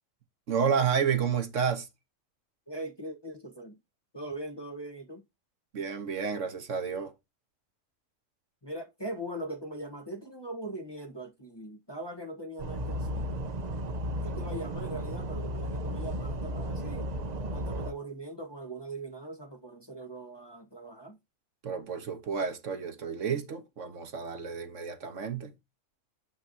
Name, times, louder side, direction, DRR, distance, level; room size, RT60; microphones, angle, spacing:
voice 1, 0.5-1.9 5.7-7.1 21.6-25.5, right 6 dB, 65° right, 1.5 m, -30 dB
voice 2, 2.7-3.8 4.1-5.2 8.6-13.3 14.2-17.1 17.5-21.2, right 1 dB, 20° left, 1.1 m, -41 dB
sound 1, 12.6-17.9, equal, 40° right, 0.6 m, -34 dB
7.4 x 5.9 x 2.7 m
omnidirectional pair, 1.4 m